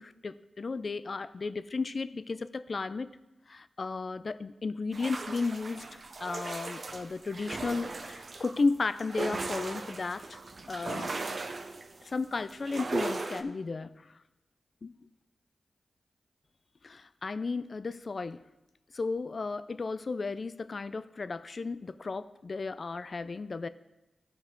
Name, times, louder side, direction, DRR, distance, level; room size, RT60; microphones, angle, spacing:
voice 1, 0.0-3.1 3.5-5.9 6.2-10.4 10.7-11.1 12.0-14.2 14.8-14.9 16.8-18.4 18.9-23.7, left 3 dB, 55° left, 14 dB, 0.4 m, -34 dB
sound 1, 4.9-13.4, right 3 dB, 55° right, 0.7 m, -38 dB
14.0 x 4.7 x 3.8 m, 1.0 s
cardioid pair, 60°, 0 cm